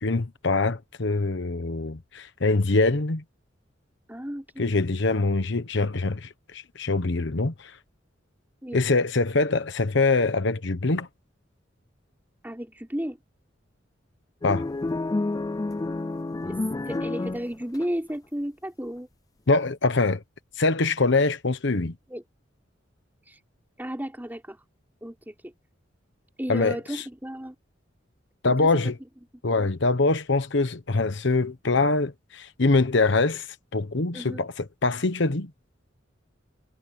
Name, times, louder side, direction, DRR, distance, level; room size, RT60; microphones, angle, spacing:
voice 1, 0.0-3.2 4.6-7.8 8.7-11.1 14.4-14.7 19.5-20.2 20.6-21.9 26.5-27.0 28.4-28.9 29.4-33.5 33.7-35.5, left 3 dB, 65° left, 1.1 m, -24 dB
voice 2, 4.1-4.7 8.6-8.8 12.4-13.2 16.4-16.6 16.8-19.1 22.1-22.2 23.2-23.4 23.8-24.6 25.0-25.5 26.4-27.5 28.4-28.7 29.5-29.7 34.1-34.4, equal, 10° right, 4.9 m, -34 dB
sound 1, 14.4-17.9, left 2 dB, 20° left, 0.4 m, -29 dB
head